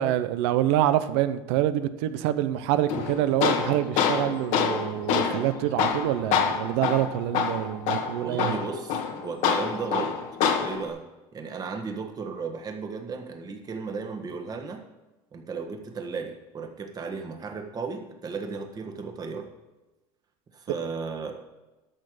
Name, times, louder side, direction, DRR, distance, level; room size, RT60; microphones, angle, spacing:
voice 1, 0.0-8.6, right 12 dB, 85° right, 12 dB, 0.7 m, -26 dB
Tools, 2.9-10.9, left 7 dB, 65° left, 1.3 m, -27 dB
voice 2, 8.2-9.0 9.2-10.1 10.6-11.0 11.3-14.8 15.3-19.5 20.5-21.4, right 5 dB, 30° right, 4 dB, 1.5 m, -34 dB
13.0 x 6.6 x 5.0 m, 1.1 s
cardioid pair, 130°, 13 cm